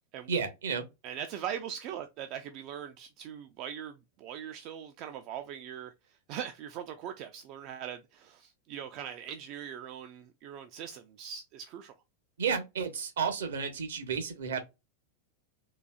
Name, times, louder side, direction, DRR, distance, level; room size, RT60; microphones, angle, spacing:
voice 1, 0.3-0.8 12.4-14.6, right 6 dB, 65° right, 0.9 m, -32 dB
voice 2, 1.0-5.9 6.3-11.9, right 9 dB, 40° right, 0.4 m, -41 dB
3.9 x 2.6 x 2.3 m
figure-of-eight pair, 90°, 0 cm